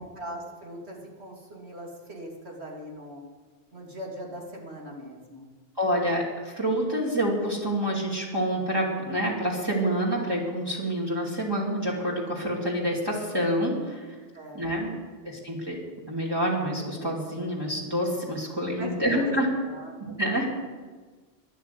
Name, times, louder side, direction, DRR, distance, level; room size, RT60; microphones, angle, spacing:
voice 1, 0.0-3.3 3.7-5.5 14.3-15.0 18.8-20.4, equal, 70° right, -2 dB, 3.1 m, -40 dB
voice 2, 5.8-14.1 14.5-14.9 15.2-15.8 16.1-19.5 20.0-20.5, equal, 20° right, -4 dB, 2.5 m, -27 dB
12.5 x 11.0 x 8.3 m, 1.4 s
omnidirectional pair, 1.2 m